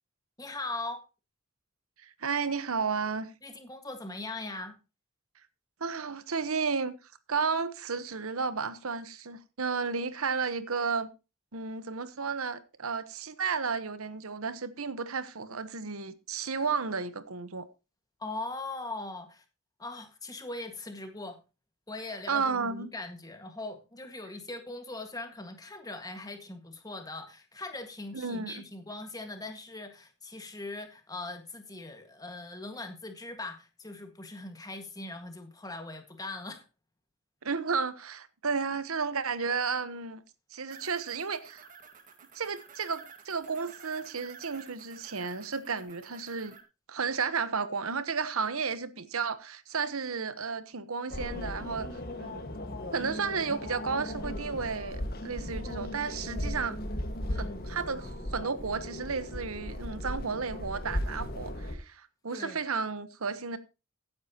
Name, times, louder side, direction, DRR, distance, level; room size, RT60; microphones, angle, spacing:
voice 1, 0.4-1.0 3.4-4.7 18.2-19.4 19.8-21.4 21.9-36.6 50.1-50.3 57.3-57.6 62.3-62.6, left 2 dB, 15° left, 1.7 m, -40 dB
voice 2, 2.0-3.3 5.8-6.9 7.3-11.1 11.5-17.6 22.3-22.9 28.1-28.5 37.4-40.2 40.5-41.7 42.3-46.6 46.9-51.9 52.2-52.4 52.9-56.8 57.3-63.6, right 5 dB, 80° right, 1.1 m, -33 dB
sound 1, 40.7-46.6, right 6 dB, 40° right, 1.9 m, -52 dB
sound 2, 51.1-61.7, left 1 dB, 45° left, 1.7 m, -37 dB
15.5 x 9.6 x 2.9 m
head